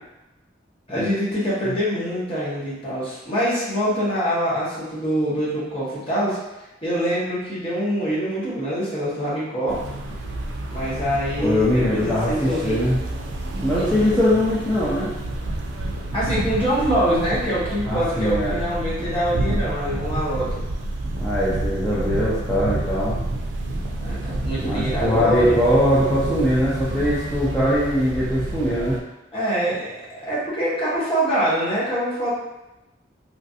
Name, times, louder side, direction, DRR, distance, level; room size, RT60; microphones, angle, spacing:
voice 1, 0.9-6.4 6.8-9.8 10.7-12.9 13.7-14.2 16.1-20.5 21.9-22.1 24.0-25.6 29.3-32.3, equal, 30° left, -9 dB, 1.1 m, -24 dB
sound 1, 9.7-29.0, right 1 dB, 90° right, 0.4 m, -29 dB
voice 2, 11.4-13.0 13.6-15.1 17.9-18.6 21.2-23.2 24.6-29.0, equal, 5° left, -11 dB, 0.5 m, -21 dB
3.1 x 2.5 x 2.6 m, 0.97 s
head